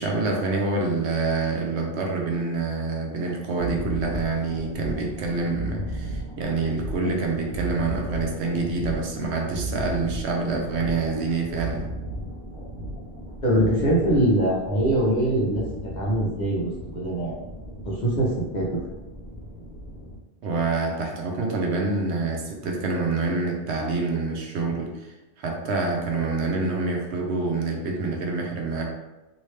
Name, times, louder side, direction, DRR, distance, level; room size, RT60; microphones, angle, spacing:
voice 1, 0.0-11.8 20.4-28.8, right 3 dB, 75° right, 0 dB, 0.9 m, -27 dB
sound 1, 3.6-20.2, right 1 dB, 50° right, 1.0 m, -35 dB
voice 2, 13.4-15.6 16.0-17.4 17.8-18.7, right 1 dB, 45° left, -5 dB, 0.9 m, -23 dB
3.0 x 2.7 x 3.2 m, 1.1 s
omnidirectional pair, 1.2 m